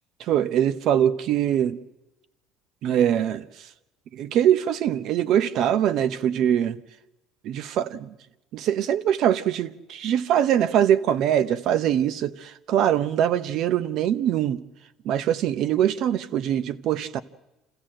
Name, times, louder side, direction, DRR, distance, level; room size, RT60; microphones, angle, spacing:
voice 1, 0.3-1.8 2.8-3.4 4.1-6.8 7.4-8.1 8.5-14.6 15.0-17.2, right 10 dB, 55° right, 0.9 m, -23 dB
27.5 x 15.5 x 7.7 m
cardioid pair, 140°, 0 cm